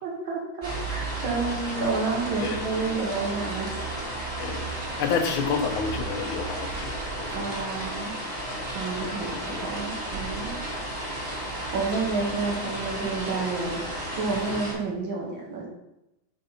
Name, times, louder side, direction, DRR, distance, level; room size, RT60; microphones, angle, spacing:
voice 1, 0.0-3.7 7.3-8.1 8.7-10.6 11.5-13.8 14.2-15.7, right 4 dB, 70° right, -1 dB, 1.9 m, -30 dB
sound 1, 0.6-14.7, right 1 dB, 30° right, 2.3 m, -33 dB
voice 2, 4.4-4.7 5.0-7.5 8.6-8.7 9.0-9.8, left 6 dB, 70° left, 5 dB, 1.6 m, -30 dB
5.5 x 4.0 x 5.6 m, 0.90 s
omnidirectional pair, 2.3 m